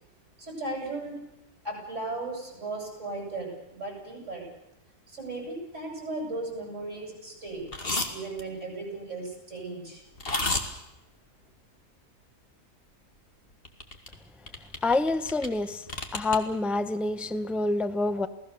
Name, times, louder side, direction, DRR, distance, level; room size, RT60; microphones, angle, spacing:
voice 1, 0.4-1.2 1.6-4.5 5.1-7.6 8.1-10.0, right 2 dB, 50° right, 1 dB, 8.5 m, -36 dB
sound 1, 7.7-8.1 8.4-8.5 10.2-10.6 13.6-14.2 14.5-15.5 15.8-16.4, left 2 dB, 40° left, 2.3 m, -30 dB
voice 2, 14.8-15.8 16.1-18.3, left 2 dB, ahead, 11 dB, 0.6 m, -27 dB
28.5 x 18.0 x 6.9 m, 0.91 s
omnidirectional pair, 1.6 m